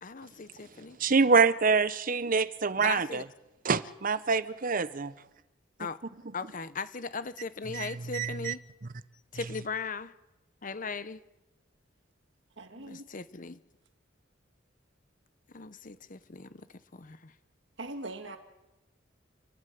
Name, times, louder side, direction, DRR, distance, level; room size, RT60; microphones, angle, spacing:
voice 1, 0.0-1.0 2.8-3.2 5.8-6.0 6.3-8.6 9.3-10.1 10.6-11.2 12.7-13.6 15.5-16.7 16.9-17.3, left 4 dB, 45° left, 14 dB, 0.9 m, -38 dB
voice 2, 1.0-3.2 3.6-5.1 7.7-8.5, right 4 dB, 45° right, 14 dB, 0.8 m, -26 dB
voice 3, 12.6-13.1 17.8-18.4, right 2 dB, 65° right, 6 dB, 2.0 m, -41 dB
29.0 x 11.5 x 9.4 m, 0.99 s
head